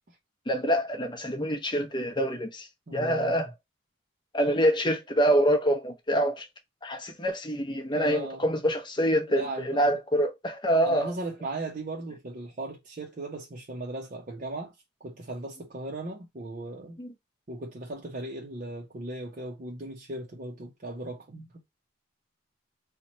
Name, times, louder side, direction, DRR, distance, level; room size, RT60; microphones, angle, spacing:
voice 1, 0.5-3.5 4.3-6.5 6.8-11.1 17.0-17.1, equal, 20° left, 0.7 m, -26 dB
voice 2, 2.9-3.3 7.9-8.4 9.3-9.9 10.9-14.7 15.0-17.0 17.5-21.5, right 2 dB, 40° right, 0.6 m, -37 dB
2.9 x 2.2 x 4.0 m
head